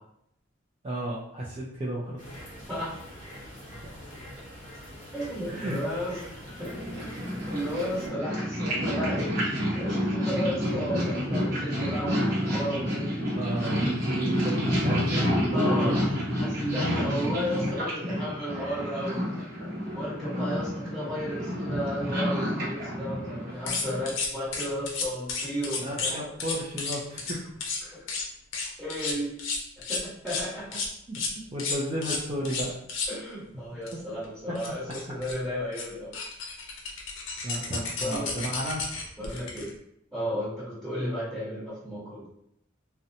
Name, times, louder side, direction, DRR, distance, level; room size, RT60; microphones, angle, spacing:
voice 1, 0.8-2.3 3.7-3.9 5.5-5.8 13.3-16.0 25.8-27.5 31.1-31.2 31.5-32.8 33.9-34.0 37.4-38.8, right 1 dB, 30° right, -7 dB, 0.4 m, -33 dB
sound 1, 2.2-8.1, equal, 40° left, 1.2 m, -44 dB
voice 2, 2.7-3.0 5.1-7.2 7.5-9.3 9.7-13.2 15.5-16.0 16.4-19.2 19.9-26.2 27.8-28.0 28.8-29.3 29.9-30.8 33.1-34.8 35.1-36.1 38.0-38.3 39.2-39.7 40.1-42.3, equal, 5° right, -13 dB, 1.2 m, -33 dB
Purr, 6.5-24.1, equal, 50° right, 1.0 m, -29 dB
sound 2, 23.7-26.1 26.4-27.3 27.6-27.8 28.1-28.2 28.5-30.4 30.7-30.9 31.1-31.3 31.6-33.1 33.9-34.0 34.2-34.3 34.5-35.3 35.7-35.8 36.1-39.7, left 4 dB, 70° left, 0.5 m, -32 dB
2.6 x 2.1 x 2.7 m, 0.75 s
head